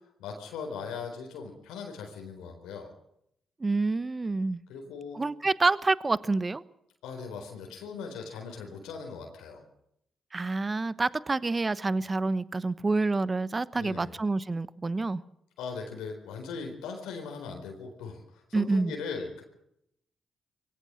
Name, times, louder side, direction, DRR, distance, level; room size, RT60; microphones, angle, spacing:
voice 1, 0.2-2.9 4.7-5.2 7.0-9.6 13.8-14.1 15.6-19.4, left 5 dB, 80° left, 2 dB, 4.2 m, -39 dB
voice 2, 3.6-4.6 5.1-6.6 10.3-15.2 18.5-18.9, right 3 dB, 30° right, 17 dB, 1.0 m, -27 dB
23.0 x 17.0 x 7.7 m, 0.77 s
hypercardioid pair, 45°, 0 cm